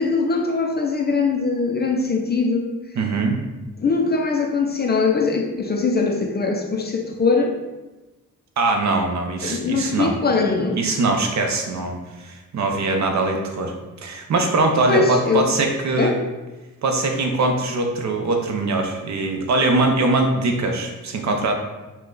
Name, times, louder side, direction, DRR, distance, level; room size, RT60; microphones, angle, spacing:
voice 1, 0.0-2.8 3.8-7.5 9.4-10.8 14.9-15.5 16.0-16.2, left 4 dB, 30° left, 2 dB, 0.4 m, -21 dB
voice 2, 3.0-3.4 8.6-10.2 10.7-13.7 14.0-16.2 16.8-21.5, right 2 dB, 55° right, 3 dB, 0.7 m, -22 dB
5.7 x 2.2 x 3.8 m, 1.1 s
wide cardioid pair, 165°, 34 cm